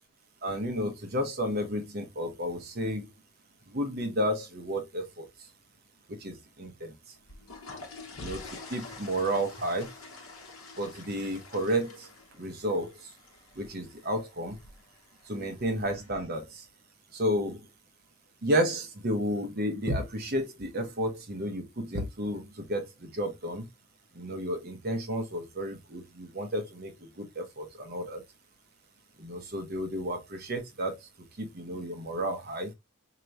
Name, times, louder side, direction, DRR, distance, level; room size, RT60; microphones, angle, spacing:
voice 1, 0.4-3.1 3.7-5.5 6.1-7.2 8.2-9.9 10.8-12.1 12.4-13.1 13.5-14.6 15.2-16.7 17.1-17.7 18.4-23.7 24.1-28.2 29.2-31.1 31.4-32.7, equal, 45° right, 0.9 m, -32 dB
sound 1, 7.2-16.2, left 3 dB, 75° left, 1.1 m, -48 dB
4.5 x 2.9 x 2.6 m
head